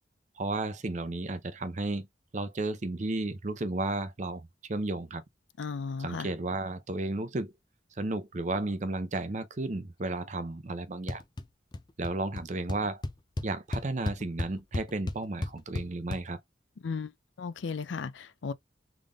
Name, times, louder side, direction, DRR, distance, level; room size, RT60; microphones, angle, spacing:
voice 1, 0.4-2.1 2.3-5.2 6.0-7.5 8.0-11.2 12.0-13.0 13.4-16.4, right 2 dB, 40° right, 0.6 m, -33 dB
voice 2, 5.6-6.3 16.8-17.1 17.4-18.5, left 5 dB, 85° left, 0.5 m, -35 dB
sound 1, 11.1-11.5 11.7-12.1 12.4-12.5 12.7-16.2, left 2 dB, 25° left, 0.4 m, -33 dB
3.6 x 3.5 x 2.3 m
head